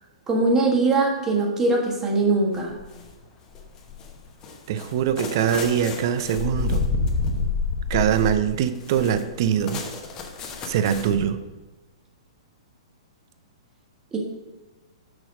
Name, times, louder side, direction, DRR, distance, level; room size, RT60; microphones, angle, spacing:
voice 1, 0.3-2.7 14.1-14.2, right 3 dB, 15° right, -1 dB, 1.4 m, -21 dB
sound 1, 2.5-3.1 3.5-11.3, left 4 dB, 25° left, 1.0 m, -29 dB
voice 2, 4.7-6.9 7.9-9.8 10.7-11.4, right 9 dB, 40° right, 11 dB, 0.4 m, -23 dB
6.2 x 5.7 x 5.0 m, 1.2 s
figure-of-eight pair, 110°, 3 cm